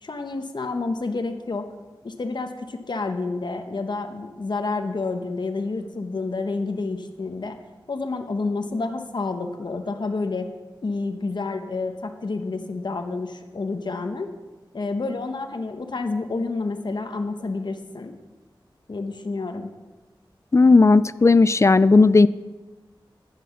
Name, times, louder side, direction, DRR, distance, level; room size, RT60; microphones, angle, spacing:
voice 1, 0.0-1.7 2.0-7.6 7.9-10.5 10.8-14.3 14.7-18.1 18.9-19.7, left 3 dB, 60° left, 6 dB, 0.9 m, -29 dB
voice 2, 20.5-22.3, left 3 dB, 35° left, 17 dB, 0.3 m, -14 dB
10.5 x 8.4 x 5.8 m, 1.2 s
wide cardioid pair, 60°, 9 cm